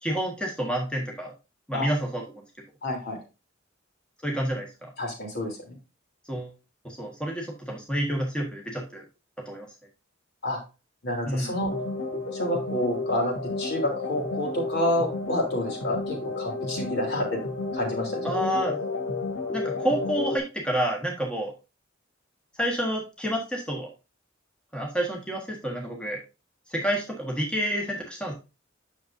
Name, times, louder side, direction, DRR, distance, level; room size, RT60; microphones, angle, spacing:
voice 1, 0.0-1.3 1.7-2.4 4.2-4.9 6.3-6.5 6.8-9.0 9.4-9.7 11.2-11.5 18.2-18.8 19.5-21.5 22.6-23.9 24.7-26.2 26.7-28.3, right 1 dB, 5° left, -1 dB, 1.5 m, -29 dB
voice 2, 2.8-3.2 5.0-5.7 10.4-10.6 11.0-11.7 12.3-17.4 17.7-18.3, left 1 dB, 55° left, 1 dB, 3.4 m, -29 dB
sound 1, 11.7-20.4, left 3 dB, 80° left, 2.8 m, -32 dB
9.2 x 6.5 x 2.6 m, 0.29 s
head